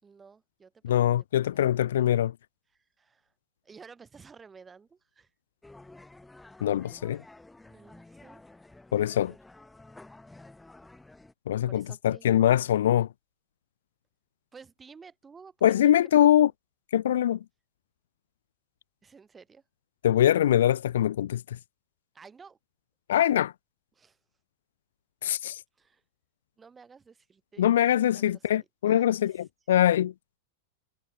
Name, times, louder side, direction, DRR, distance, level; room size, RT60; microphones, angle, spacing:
voice 1, 0.0-1.6 2.7-3.3 3.6-5.3 7.7-8.4 11.6-12.3 14.5-15.6 15.8-15.9 16.2-16.5 19.0-19.6 22.1-22.6 23.9-24.2 25.7-26.0 26.6-27.7 28.0-29.4, right 5 dB, 15° right, 5.7 m, -53 dB
voice 2, 0.8-2.3 6.6-7.2 8.9-9.3 11.5-13.1 15.6-16.5 16.9-17.4 20.0-21.6 23.1-23.5 25.2-25.6 27.6-30.1, left 11 dB, 60° left, 0.6 m, -23 dB
sound 1, 5.6-11.3, left 2 dB, 5° left, 2.4 m, -51 dB
figure-of-eight pair, 90°, 0 cm